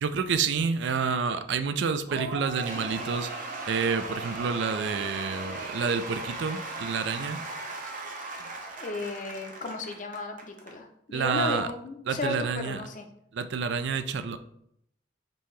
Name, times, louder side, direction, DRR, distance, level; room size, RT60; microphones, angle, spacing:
voice 1, 0.0-3.3 3.7-7.4 8.4-8.5 11.1-11.7 12.1-12.8 13.3-14.4, right 5 dB, 65° right, 10 dB, 0.4 m, -29 dB
Cheering / Applause / Crowd, 2.1-10.7, right 2 dB, 45° right, 0.7 m, -37 dB
voice 2, 8.8-13.0, left 3 dB, 45° left, 5 dB, 0.6 m, -34 dB
5.3 x 2.8 x 3.2 m, 0.72 s
head